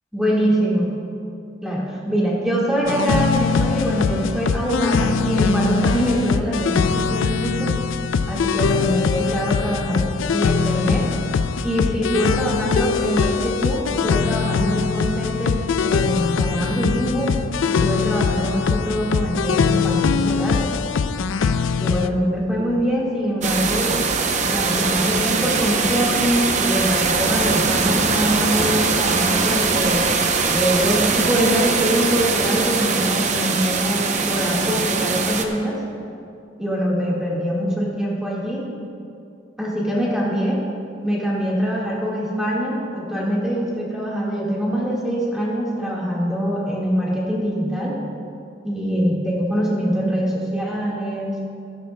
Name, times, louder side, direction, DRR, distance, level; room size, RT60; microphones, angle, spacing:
voice 1, 0.1-0.9 1.6-7.7 8.3-11.1 11.6-17.3 17.7-20.7 21.8-24.0 24.4-30.0 30.5-35.8 36.6-38.7 39.6-40.6 41.0-48.0 48.6-51.4, equal, 5° right, -6 dB, 1.6 m, -23 dB
sound 1, 2.9-22.1, left 5 dB, 85° left, 0.4 m, -22 dB
sound 2, 23.4-35.5, right 4 dB, 40° right, 0.7 m, -21 dB
14.5 x 14.0 x 2.2 m, 2.5 s
head